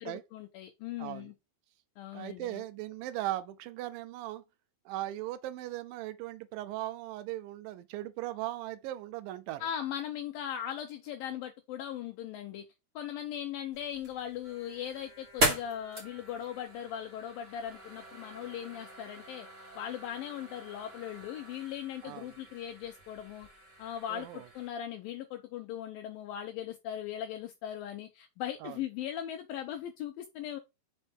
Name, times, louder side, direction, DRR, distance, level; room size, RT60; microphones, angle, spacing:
voice 1, 0.0-1.3 2.0-2.6 9.6-12.6 13.0-19.5 19.8-23.5 23.8-30.6, left 10 dB, 85° left, 2.1 m, -39 dB
voice 2, 1.0-1.3 2.1-4.4 4.9-9.7 22.0-22.3 24.1-24.5 28.6-28.8, right 15 dB, 85° right, 2.0 m, -38 dB
sound 1, 13.7-24.7, right 1 dB, 30° right, 1.4 m, -39 dB
5.5 x 5.3 x 4.1 m
omnidirectional pair, 4.8 m